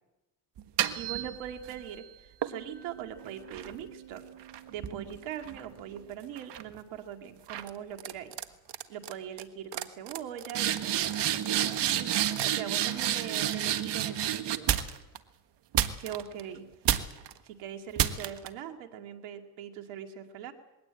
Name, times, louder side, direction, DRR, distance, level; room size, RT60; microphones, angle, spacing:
sound 1, 0.6-1.8 2.4-6.0 6.4-6.8 7.5-7.7 8.0-8.4 8.7-9.1 9.4-9.5 9.7-15.2 15.7-16.4 16.8-17.3 18.0-18.5, right 11 dB, 60° right, 1.6 m, -31 dB
voice 1, 1.0-4.2 4.7-8.3 8.9-14.7 16.0-16.7 17.4-20.5, right 9 dB, 85° right, 5 dB, 2.5 m, -41 dB
21.5 x 17.5 x 8.9 m, 1.0 s
supercardioid pair, 60°, 46 cm